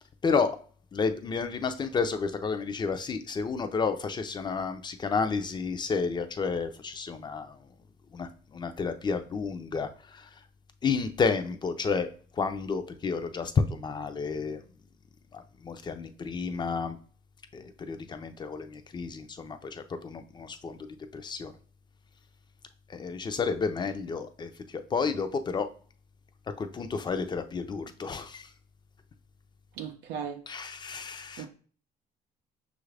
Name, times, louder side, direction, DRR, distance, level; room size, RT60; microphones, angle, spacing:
voice 1, 0.9-7.6 8.1-10.3 10.8-12.1 12.3-14.6 15.3-17.0 17.5-20.8 21.1-21.5 22.9-25.7 26.6-28.5 30.5-31.5, left 5 dB, 25° left, 0.5 m, -31 dB
voice 2, 29.8-30.4 31.4-31.5, right 7 dB, 85° right, 0.5 m, -36 dB
5.5 x 2.5 x 3.3 m
cardioid pair, 110°, 17 cm